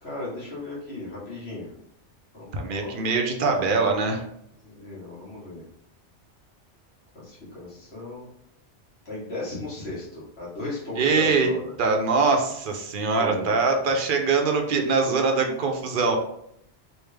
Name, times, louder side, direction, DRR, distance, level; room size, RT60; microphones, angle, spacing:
voice 1, 0.0-1.7 2.3-3.2 4.6-5.6 7.1-8.3 9.0-11.8 13.1-13.7, left 2 dB, 60° left, -7 dB, 1.6 m, -36 dB
voice 2, 2.5-4.2 11.0-11.5 11.8-16.2, right 4 dB, 55° right, 4 dB, 0.7 m, -23 dB
3.3 x 2.8 x 3.2 m, 0.76 s
omnidirectional pair, 1.2 m